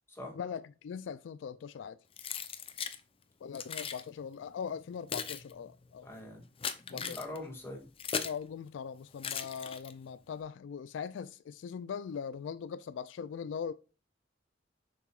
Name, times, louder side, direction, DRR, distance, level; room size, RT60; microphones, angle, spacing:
voice 1, 0.3-2.0 3.4-6.1 6.9-7.2 8.2-13.7, left 7 dB, 85° left, 0.3 m, -40 dB
Keys jangling, 2.2-3.0 3.5-4.0 4.7-8.4 9.2-10.1, left 6 dB, 30° left, 0.6 m, -38 dB
voice 2, 6.0-6.4 6.8-7.9, left 1 dB, 15° left, 2.1 m, -43 dB
7.0 x 5.9 x 2.4 m
head